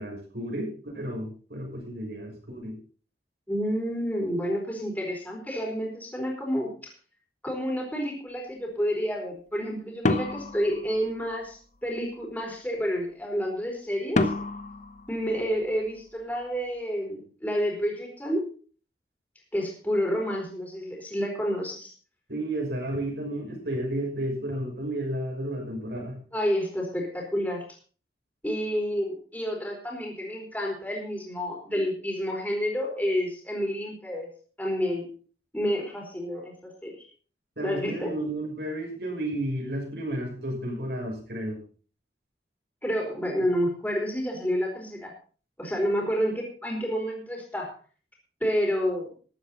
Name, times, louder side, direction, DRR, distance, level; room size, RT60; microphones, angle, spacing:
voice 1, 0.0-2.8 22.3-26.2 37.6-41.6, right 1 dB, 65° right, 1 dB, 6.1 m, -32 dB
voice 2, 3.5-6.7 7.4-14.3 15.1-18.4 19.5-21.9 26.3-27.6 28.4-34.3 34.6-35.0 35.5-36.9 37.6-38.1 42.8-45.1 45.6-47.7 48.4-49.1, equal, 10° left, -1 dB, 4.4 m, -29 dB
sound 1, 10.0-11.5 14.1-16.0, left 2 dB, 45° left, 1.0 m, -29 dB
14.0 x 12.0 x 4.2 m, 0.40 s
head